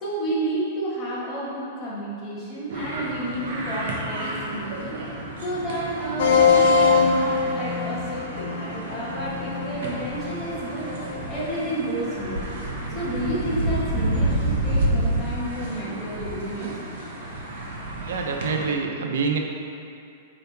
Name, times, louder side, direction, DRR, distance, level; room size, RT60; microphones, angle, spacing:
voice 1, 0.0-5.0 5.4-10.9 11.3-12.6 12.9-16.7, right 1 dB, 10° left, -9 dB, 1.6 m, -31 dB
sound 1, 2.7-18.7, right 1 dB, 55° right, 1.2 m, -30 dB
sound 2, 6.2-11.5, left 5 dB, 55° left, 0.6 m, -23 dB
voice 2, 18.1-19.4, right 5 dB, 70° right, 3 dB, 0.7 m, -26 dB
8.9 x 5.1 x 3.5 m, 2.5 s
supercardioid pair, 180°, 0 cm